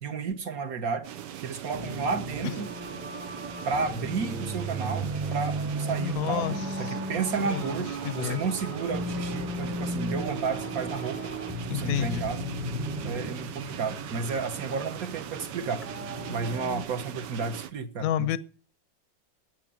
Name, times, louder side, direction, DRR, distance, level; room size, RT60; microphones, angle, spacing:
voice 1, 0.0-1.1 1.4-2.7 3.6-11.3 11.6-12.5 13.0-15.8 16.3-18.4, right 5 dB, 50° right, 1.6 m, -32 dB
sound 1, 1.0-17.7, right 10 dB, 65° right, 1.3 m, -40 dB
sound 2, 1.7-16.8, right 1 dB, 10° right, 0.7 m, -35 dB
voice 2, 6.0-7.0 7.4-8.4 11.7-12.3 18.0-18.4, left 11 dB, 60° left, 1.0 m, -31 dB
10.0 x 9.9 x 8.8 m
omnidirectional pair, 2.1 m